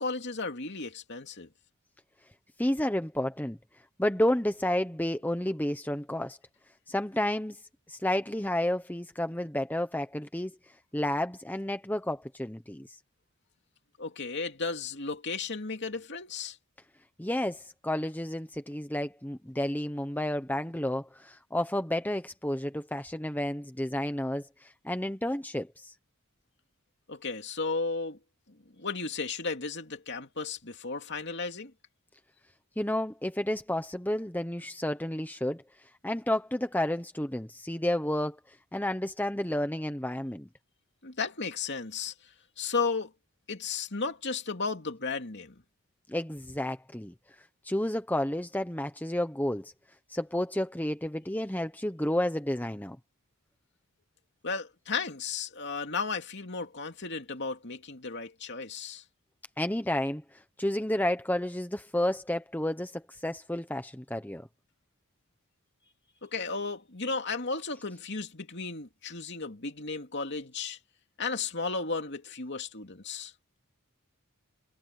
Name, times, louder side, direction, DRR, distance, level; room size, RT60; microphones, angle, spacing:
voice 1, 0.0-1.5 14.0-16.6 27.1-28.2 28.8-31.7 41.0-42.1 42.6-43.1 43.5-45.5 54.4-59.0 66.2-70.8 71.2-73.3, left 4 dB, 50° left, 2.8 m, -34 dB
voice 2, 2.6-3.6 4.0-6.4 6.9-7.6 7.9-10.5 10.9-13.0 17.2-25.9 32.8-35.6 36.0-40.5 46.1-47.1 47.6-49.7 50.1-53.0 59.6-60.2 60.6-64.5, left 1 dB, 10° left, 1.0 m, -31 dB
head